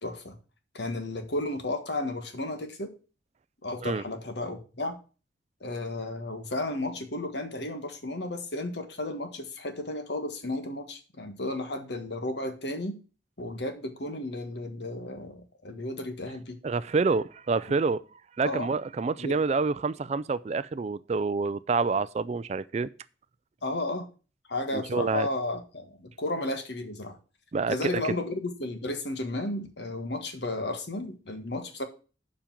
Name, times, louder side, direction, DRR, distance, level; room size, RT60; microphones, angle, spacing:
voice 1, 0.0-0.4 0.7-2.9 3.6-5.0 5.6-13.0 13.4-16.6 18.4-18.7 19.2-19.4 23.6-24.1 24.5-27.2 27.7-31.8, left 2 dB, 65° left, 1.5 m, -33 dB
voice 2, 16.6-18.0 18.4-22.9 24.7-25.3 27.5-27.8, right 4 dB, 35° right, 0.3 m, -27 dB
7.3 x 5.1 x 7.3 m
head